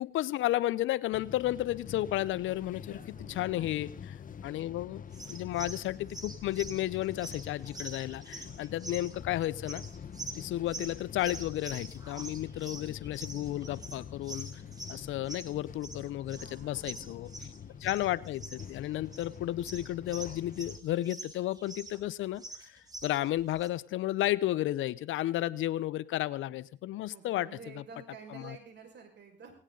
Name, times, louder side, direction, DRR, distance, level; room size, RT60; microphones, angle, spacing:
voice 1, 0.0-3.9 4.4-5.0 5.3-9.8 10.4-14.5 14.9-17.3 17.8-27.5 27.8-27.9 28.3-28.6, left 14 dB, 85° left, 19 dB, 0.8 m, -33 dB
sound 1, 1.1-20.8, left 7 dB, 45° left, 0.9 m, -46 dB
voice 2, 2.8-3.8 16.3-17.3 27.1-29.5, right 5 dB, 60° right, 4 dB, 5.5 m, -51 dB
sound 2, 5.1-22.0 22.3-23.7, right 2 dB, 20° right, 2.9 m, -46 dB
19.0 x 18.0 x 3.9 m, 0.40 s
cardioid pair, 90°, 20 cm